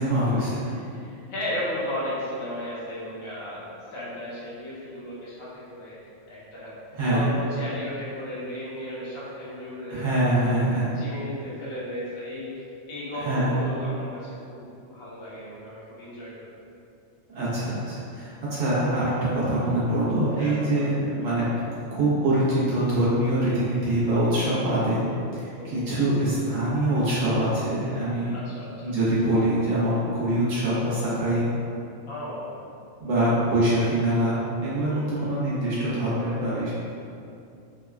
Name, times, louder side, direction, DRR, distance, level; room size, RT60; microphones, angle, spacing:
voice 1, 0.0-0.7 6.9-7.2 9.9-10.9 13.1-13.5 17.3-21.5 21.9-25.0 25.3-28.4 28.8-31.6 33.0-36.7, right 1 dB, 75° right, -9 dB, 1.3 m, -24 dB
voice 2, 0.9-3.6 3.9-6.0 6.3-6.7 7.0-10.6 11.0-16.5 20.3-20.9 25.5-25.8 28.3-29.0 32.1-32.5 34.9-35.3, left 1 dB, 35° left, -8 dB, 0.5 m, -35 dB
3.5 x 2.2 x 2.3 m, 2.5 s
omnidirectional pair, 1.4 m